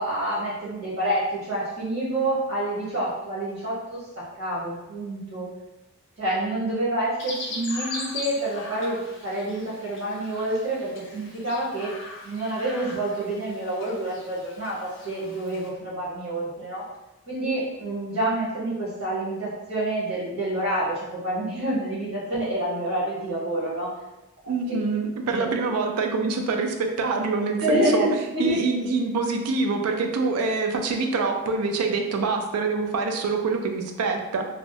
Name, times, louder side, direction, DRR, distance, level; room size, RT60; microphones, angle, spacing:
voice 1, 0.0-4.0 4.4-5.5 6.2-11.9 12.2-16.8 17.3-23.9 24.7-24.8 25.3-25.7 27.6-28.6, right 1 dB, 70° right, -8 dB, 1.0 m, -28 dB
Chirp tweet, 7.2-15.7, left 2 dB, 55° left, 0.5 m, -39 dB
voice 2, 24.5-28.1 28.4-34.5, right 4 dB, 85° right, 4 dB, 0.4 m, -25 dB
2.6 x 2.0 x 2.6 m, 1.0 s
head